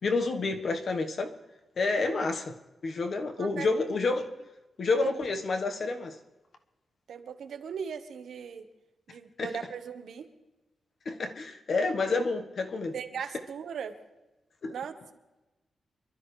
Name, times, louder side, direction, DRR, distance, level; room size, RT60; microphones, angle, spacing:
voice 1, 0.0-1.3 1.8-2.6 2.8-4.3 4.8-6.2 9.4-9.5 11.0-12.9 14.6-14.7, left 3 dB, 50° left, 1.3 m, -29 dB
voice 2, 7.1-8.6 9.1-10.3 12.9-13.9 14.7-14.9, right 7 dB, 80° right, 1.3 m, -38 dB
26.5 x 12.5 x 3.3 m
wide cardioid pair, 155°, 0 cm